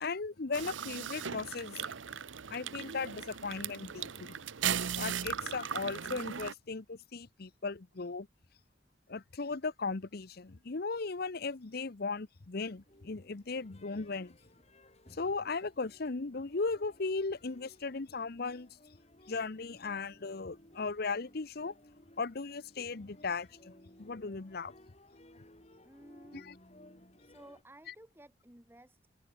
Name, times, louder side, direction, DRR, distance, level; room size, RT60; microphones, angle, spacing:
voice 1, 0.0-1.9 2.5-4.4 4.9-8.3 9.1-14.4 15.1-18.7 19.3-21.8 22.2-23.7 24.0-24.7 26.3-26.6 27.9-28.0, left 4 dB, 55° left, 0.8 m, -37 dB
sound 1, 0.5-6.5, right 8 dB, 85° right, 0.9 m, -37 dB
sound 2, 12.6-27.6, left 1 dB, 35° left, 5.7 m, -60 dB
voice 2, 25.8-26.5 27.2-29.1, right 1 dB, 10° right, 1.8 m, -55 dB
head